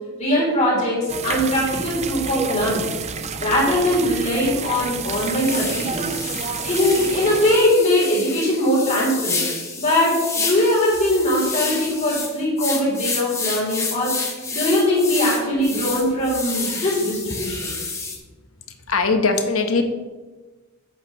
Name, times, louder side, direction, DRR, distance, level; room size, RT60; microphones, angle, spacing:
voice 1, 0.2-2.9 3.4-6.1 6.7-9.4 9.8-14.2 14.5-17.7, left 1 dB, 30° left, -5 dB, 3.4 m, -21 dB
sound 1, 1.1-7.6, right 5 dB, 30° right, 0.4 m, -29 dB
sound 2, 5.0-18.2, left 4 dB, 15° left, 1.1 m, -29 dB
voice 2, 18.9-19.8, left 4 dB, 65° left, 6 dB, 1.1 m, -20 dB
11.5 x 8.3 x 3.1 m, 1.3 s
head